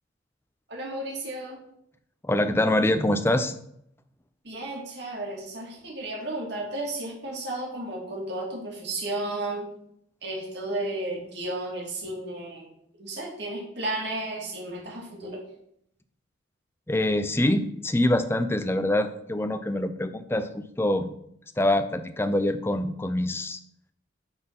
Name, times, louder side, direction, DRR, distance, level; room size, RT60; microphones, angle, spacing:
voice 1, 0.7-1.6 4.4-9.7 10.2-12.7 13.0-15.4, right 2 dB, 55° right, -2 dB, 2.4 m, -33 dB
voice 2, 2.2-3.6 16.9-21.1 21.6-23.6, left 1 dB, 10° left, 9 dB, 0.5 m, -25 dB
8.8 x 4.4 x 5.6 m, 0.71 s
head